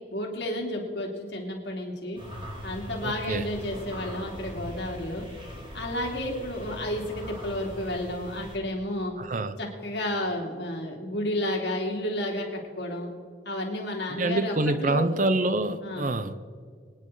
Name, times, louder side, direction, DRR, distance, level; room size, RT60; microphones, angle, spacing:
voice 1, 0.1-2.2 2.6-5.3 5.7-9.1 9.6-13.1 13.4-15.1 15.8-16.1, left 1 dB, 65° left, 3.0 m, -31 dB
sound 1, 2.2-8.6, equal, 25° right, 2.8 m, -40 dB
voice 2, 3.0-3.5 9.2-9.6 14.1-16.4, right 2 dB, 45° right, 0.7 m, -26 dB
26.0 x 9.8 x 3.9 m
head